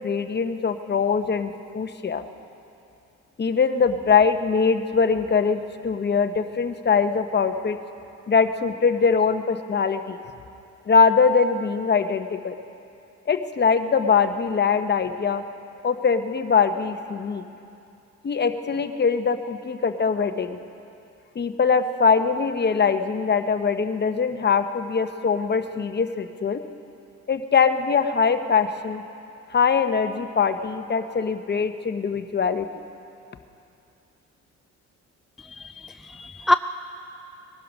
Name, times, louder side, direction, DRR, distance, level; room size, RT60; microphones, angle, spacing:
voice 1, 0.0-2.2 3.4-7.8 8.3-10.2 10.9-12.6 13.3-15.4 15.8-17.4 18.2-20.6 21.3-26.6 27.3-29.0 29.5-32.7, left 5 dB, 35° left, 9 dB, 0.9 m, -22 dB
voice 2, 35.4-36.5, left 1 dB, ahead, 8 dB, 0.3 m, -25 dB
20.0 x 11.5 x 6.1 m, 2.7 s
cardioid pair, 90°, 30 cm